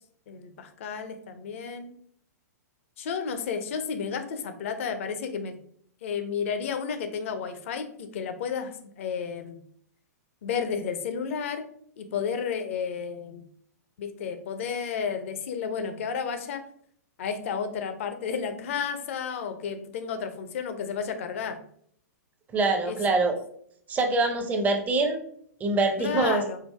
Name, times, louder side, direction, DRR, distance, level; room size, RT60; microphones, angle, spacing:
voice 1, 0.3-1.9 3.0-5.6 6.0-9.6 10.4-11.7 12.0-13.5 14.0-16.6 17.2-21.6 22.9-23.2 26.0-26.6, left 6 dB, 50° left, 8 dB, 0.6 m, -32 dB
voice 2, 22.5-23.3 23.9-25.2 25.6-26.4, right 3 dB, 15° right, 5 dB, 0.6 m, -24 dB
4.6 x 2.6 x 3.3 m, 0.64 s
figure-of-eight pair, 110°, 9 cm